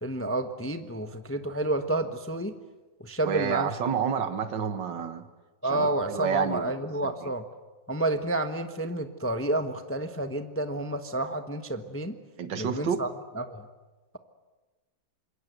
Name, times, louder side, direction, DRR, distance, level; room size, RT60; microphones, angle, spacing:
voice 1, 0.0-2.5 3.0-3.7 5.6-7.4 7.9-12.1 12.6-13.1 13.4-13.7, right 2 dB, 10° left, 7 dB, 0.8 m, -30 dB
voice 2, 3.2-5.3 5.7-6.7 7.0-7.3 12.4-13.0, right 7 dB, 70° right, 9 dB, 2.1 m, -30 dB
26.5 x 22.5 x 8.1 m, 1.2 s
omnidirectional pair, 2.1 m